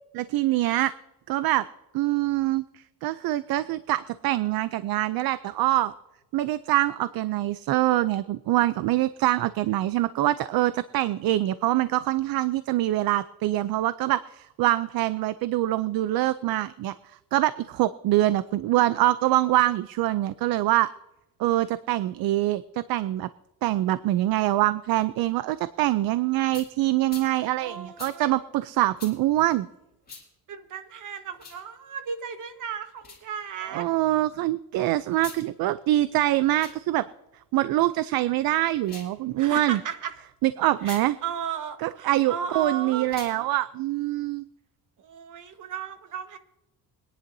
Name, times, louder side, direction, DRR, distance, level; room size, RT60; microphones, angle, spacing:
voice 1, 0.2-0.9 1.3-1.6 1.9-2.6 3.0-5.9 6.3-16.9 17.3-20.9 21.4-23.3 23.6-29.7 33.7-37.0 37.5-39.8 40.4-41.2 41.8-44.4, right 15 dB, 70° right, 14 dB, 0.5 m, -24 dB
sound 1, 26.5-26.7 27.1-27.3 28.0-28.1 29.0-29.1 30.1-30.2 31.3-31.6 33.0-33.2 35.1-35.4 36.5-36.8 38.8-39.1 40.8-41.0 43.0-43.4, left 4 dB, 25° left, 3.8 m, -43 dB
voice 2, 27.6-28.4 30.5-33.9 39.4-40.1 40.8-43.1 45.0-46.4, right 7 dB, 55° right, 8 dB, 1.4 m, -35 dB
24.0 x 10.5 x 2.7 m, 0.92 s
cardioid pair, 145°, 37 cm